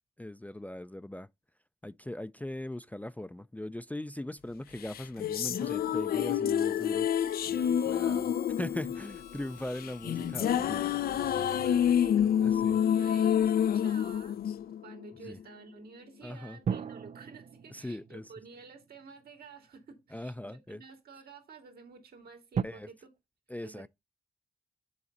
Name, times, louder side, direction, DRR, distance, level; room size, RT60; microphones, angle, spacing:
voice 1, 0.2-1.3 1.8-7.1 7.5-10.9 12.4-12.8 15.3-15.4 16.2-16.6 17.7-18.2 20.1-20.8 22.6-22.9 23.5-23.9, left 1 dB, 10° left, 0.4 m, -40 dB
sound 1, 4.8-15.2, left 9 dB, 70° left, 0.5 m, -28 dB
Harmonica, 7.1-12.2, left 7 dB, 85° left, 1.1 m, -53 dB
voice 2, 10.7-23.1 23.6-23.9, right 5 dB, 75° right, 2.4 m, -51 dB
sound 2, 11.2-13.8 16.6-20.0 20.7-20.8 22.5-22.6, right 7 dB, 45° right, 0.5 m, -39 dB
7.0 x 3.9 x 5.1 m
supercardioid pair, 45°, 16 cm